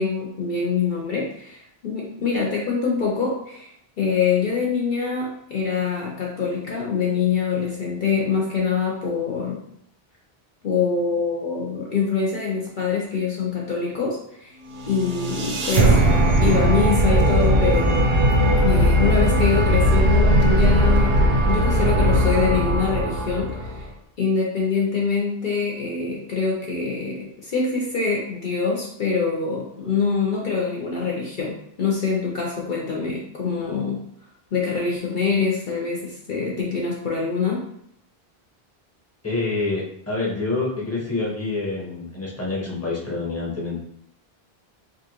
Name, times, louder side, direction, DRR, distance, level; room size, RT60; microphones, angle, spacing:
voice 1, 0.0-3.7 4.0-9.6 10.6-14.6 14.9-16.0 16.4-18.0 18.6-23.9 24.2-34.0 34.5-37.6, left 5 dB, 55° left, -3 dB, 0.8 m, -24 dB
sound 1, 14.7-23.9, equal, 70° right, 0.9 m, -18 dB
voice 2, 39.2-43.8, left 3 dB, 15° left, -6 dB, 1.0 m, -27 dB
4.9 x 2.4 x 3.0 m, 0.72 s
omnidirectional pair, 1.0 m